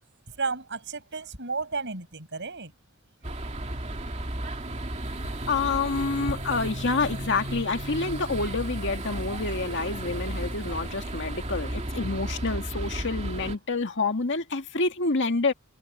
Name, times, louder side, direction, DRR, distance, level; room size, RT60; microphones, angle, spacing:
voice 1, 0.4-2.7 6.3-6.4, right 4 dB, 60° right, 6.7 m, -32 dB
sound 1, 3.2-13.6, right 1 dB, 35° right, 2.2 m, -34 dB
voice 2, 5.2-15.5, left 3 dB, 60° left, 2.0 m, -28 dB
head